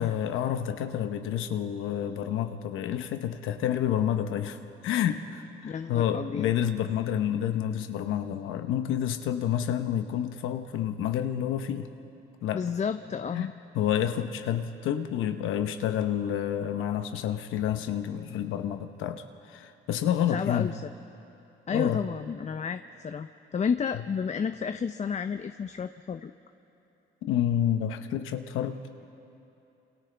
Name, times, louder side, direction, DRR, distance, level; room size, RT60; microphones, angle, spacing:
voice 1, 0.0-11.9 12.4-12.6 13.3-13.5 13.7-20.7 21.7-22.0 27.2-28.9, left 10 dB, 90° left, 8 dB, 1.0 m, -29 dB
voice 2, 5.6-6.5 12.5-13.5 20.3-20.8 21.7-26.3, left 6 dB, 35° left, 9 dB, 0.6 m, -31 dB
30.0 x 27.5 x 3.4 m, 2.8 s
cardioid pair, 90°, 20 cm